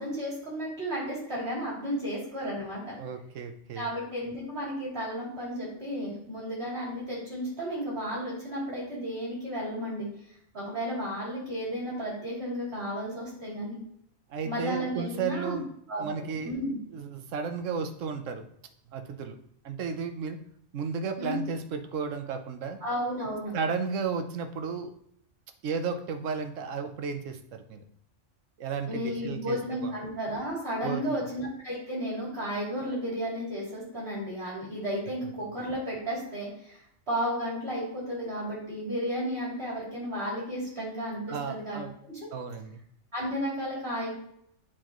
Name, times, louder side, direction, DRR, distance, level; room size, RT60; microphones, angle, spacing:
voice 1, 0.0-3.0 3.7-10.1 10.5-13.8 14.4-15.6 15.9-16.8 21.2-21.3 22.8-23.6 28.9-42.3 43.1-44.1, equal, 55° right, -6 dB, 3.2 m, -33 dB
voice 2, 3.0-3.9 14.3-15.7 16.0-16.5 16.9-18.4 18.9-19.4 19.6-20.4 20.7-22.8 23.5-24.9 25.6-27.8 28.6-29.9 30.8-31.2 41.3-41.9 42.3-42.8, right 5 dB, 85° right, 8 dB, 1.1 m, -33 dB
8.5 x 4.4 x 3.0 m, 0.72 s
omnidirectional pair, 1.3 m